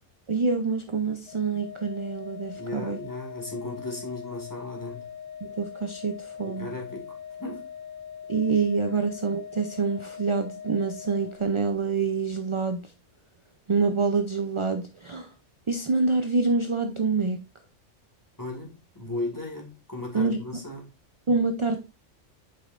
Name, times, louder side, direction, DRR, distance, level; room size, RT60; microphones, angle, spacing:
voice 1, 0.3-3.0 5.4-6.7 8.3-12.9 13.7-15.3 15.7-17.4 20.1-20.4 21.3-21.8, right 4 dB, 40° right, 0.4 m, -26 dB
Organ, 1.3-11.9, left 8 dB, 75° left, 1.7 m, -42 dB
voice 2, 2.6-5.1 6.4-7.7 8.9-9.0 18.4-20.9, left 2 dB, 15° left, 2.1 m, -36 dB
7.9 x 5.4 x 2.5 m
omnidirectional pair, 1.3 m